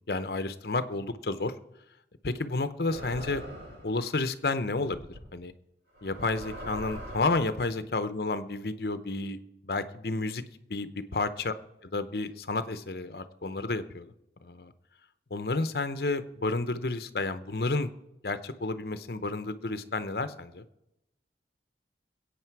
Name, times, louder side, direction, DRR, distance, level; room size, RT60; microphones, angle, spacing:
voice 1, 0.1-1.5 2.2-3.4 3.8-5.5 6.0-9.4 9.6-10.4 10.7-11.5 11.9-14.1 14.4-14.7 15.3-17.9 18.2-20.6, left 3 dB, 55° left, 11 dB, 0.8 m, -31 dB
sound 1, 2.9-3.9 4.9-5.2 5.9-7.5, equal, 65° right, 7.1 m, -41 dB
22.0 x 8.6 x 4.7 m, 0.89 s
head